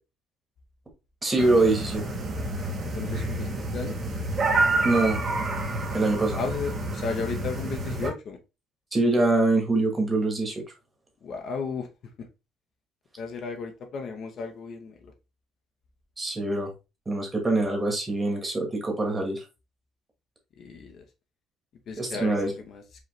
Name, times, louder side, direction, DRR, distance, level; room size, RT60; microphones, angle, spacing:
voice 1, 1.2-2.0 4.8-5.3 5.9-6.4 8.9-10.6 16.2-16.7 17.1-19.4 22.0-22.5, right 2 dB, 15° right, 1.3 m, -24 dB
sound 1, 1.4-8.1, right 2 dB, 30° right, 1.0 m, -28 dB
voice 2, 2.9-3.9 6.4-8.4 11.2-11.9 13.2-15.1 20.6-21.0 21.9-22.8, left 5 dB, 40° left, 0.7 m, -34 dB
4.9 x 3.2 x 3.1 m
cardioid pair, 170°, 0 cm